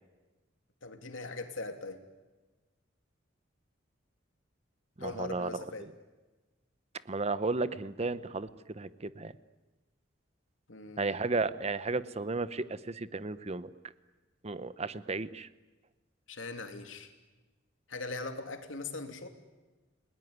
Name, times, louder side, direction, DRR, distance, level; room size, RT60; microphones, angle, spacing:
voice 1, 0.8-2.0 5.0-5.9 10.7-11.3 16.3-17.1 17.9-19.3, left 3 dB, 90° left, 6 dB, 2.8 m, -40 dB
voice 2, 5.0-5.9 7.1-8.5 8.7-9.3 11.0-13.7 14.4-15.5, right 3 dB, 35° right, 15 dB, 0.8 m, -34 dB
30.0 x 20.0 x 9.5 m, 1.2 s
head